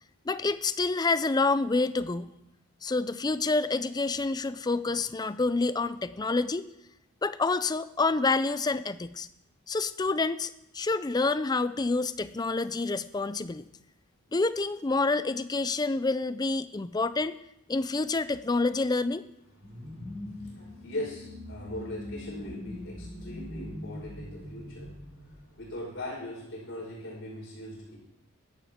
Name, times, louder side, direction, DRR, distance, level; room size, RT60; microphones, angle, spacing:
voice 1, 0.3-2.3 2.8-6.7 7.2-9.3 9.7-13.7 14.3-17.4 17.7-19.2, left 3 dB, 20° left, 13 dB, 0.4 m, -28 dB
voice 2, 19.6-28.0, left 1 dB, 60° left, -4 dB, 5.4 m, -40 dB
sound 1, 19.6-26.1, left 1 dB, 40° right, 3.1 m, -42 dB
16.0 x 12.0 x 3.7 m, 0.81 s
head